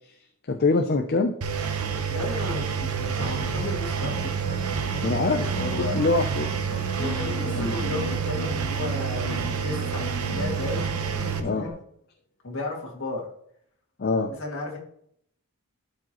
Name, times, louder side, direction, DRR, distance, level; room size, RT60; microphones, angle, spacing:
voice 1, 0.5-1.3 5.0-6.5 7.0-7.2 7.5-7.7 11.4-11.6 14.0-14.3, left 3 dB, 45° left, 5 dB, 0.5 m, -24 dB
Engine, 1.4-11.4, right 6 dB, 80° right, 0.8 m, -28 dB
voice 2, 2.1-4.4 5.7-6.1 6.9-11.7 12.4-13.3 14.3-14.8, left 2 dB, 60° left, -2 dB, 2.2 m, -34 dB
sound 1, 3.2-11.7, equal, 20° left, 3.1 m, -37 dB
11.5 x 4.8 x 3.0 m, 0.67 s
head